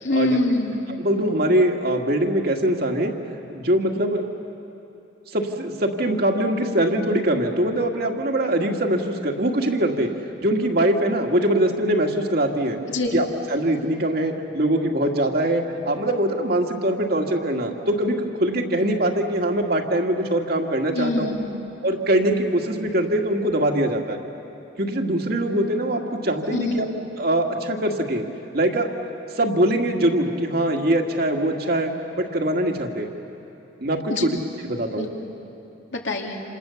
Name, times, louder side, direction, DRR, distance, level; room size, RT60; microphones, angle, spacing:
voice 1, 0.0-0.9 12.9-13.1 20.9-21.6 26.5-26.8 34.1-34.3 35.0-35.3 35.9-36.4, left 2 dB, 75° left, 1 dB, 2.8 m, -25 dB
voice 2, 1.0-3.1 3.5-4.3 5.3-10.1 10.4-12.8 13.1-21.3 21.8-24.2 24.8-26.9 27.2-28.2 28.5-28.9 29.4-33.1 33.8-34.4 34.6-35.1, right 1 dB, 55° right, 2 dB, 1.9 m, -22 dB
28.0 x 27.5 x 7.1 m, 2.8 s
head